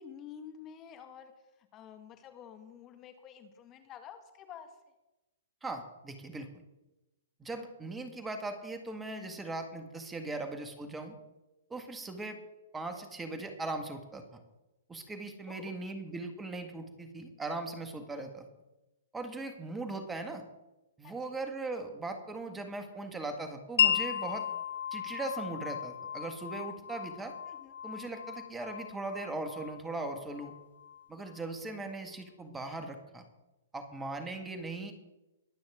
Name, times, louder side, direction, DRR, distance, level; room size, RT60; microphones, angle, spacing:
voice 1, 0.0-1.3 1.7-4.7 10.3-10.4 15.5-16.0 21.0-21.2 27.4-27.7, left 8 dB, 30° left, 7 dB, 1.7 m, -49 dB
voice 2, 5.6-6.5 7.4-11.1 11.7-12.4 12.7-14.4 14.9-18.4 19.1-20.4 21.0-24.5 24.9-27.3 27.8-30.5 31.1-33.3 33.7-34.9, right 2 dB, 10° right, 6 dB, 1.8 m, -39 dB
Wind chime, 23.8-31.4, left 9 dB, 65° left, 1.0 m, -35 dB
22.5 x 8.8 x 3.7 m, 0.98 s
hypercardioid pair, 125°, 0 cm